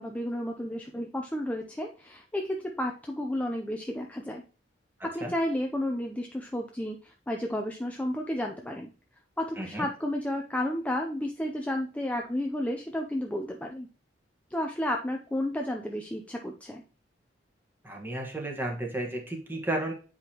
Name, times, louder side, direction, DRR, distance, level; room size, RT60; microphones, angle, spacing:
voice 1, 0.0-4.4 5.0-8.9 9.4-13.9 14.5-16.8, left 1 dB, 10° left, 2 dB, 0.5 m, -32 dB
voice 2, 9.6-9.9 17.8-19.9, right 1 dB, 10° right, 1 dB, 1.4 m, -33 dB
8.1 x 4.9 x 2.9 m, 0.35 s
head